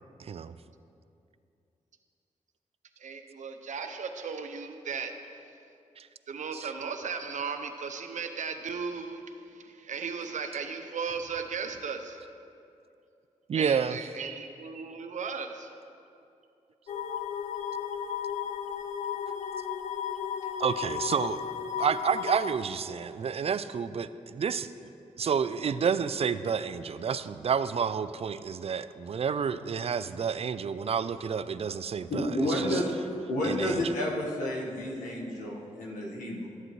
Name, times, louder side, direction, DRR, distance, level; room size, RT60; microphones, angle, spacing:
voice 1, 0.2-0.6 6.0-6.1 6.5-6.7 13.5-14.0 20.6-21.4 21.8-24.7 25.2-32.8 33.4-33.9, right 6 dB, 50° right, 14 dB, 0.4 m, -30 dB
voice 2, 3.0-5.1 6.3-12.2 13.5-15.7, right 5 dB, 70° right, 7 dB, 0.7 m, -36 dB
sound 1, 16.9-22.5, left 8 dB, 65° left, 0.4 m, -34 dB
voice 3, 32.1-32.9 33.3-36.5, left 1 dB, 85° left, -3 dB, 1.5 m, -30 dB
13.0 x 7.6 x 3.1 m, 2.6 s
cardioid pair, 50°, 13 cm